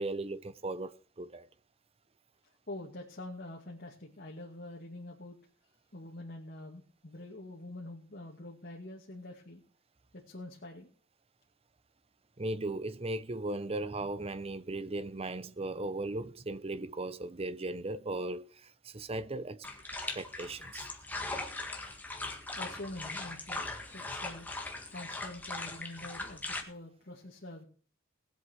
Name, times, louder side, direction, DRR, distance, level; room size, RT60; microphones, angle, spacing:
voice 1, 0.0-1.5 12.4-19.7 20.2-20.9, right 2 dB, 30° right, 0.7 m, -37 dB
voice 2, 2.7-5.4 5.9-9.6 10.1-10.9 22.6-24.5 24.9-27.6, left 1 dB, 50° left, 2.3 m, -45 dB
sound 1, 19.6-26.6, left 2 dB, 10° left, 1.7 m, -40 dB
20.0 x 8.1 x 4.6 m
head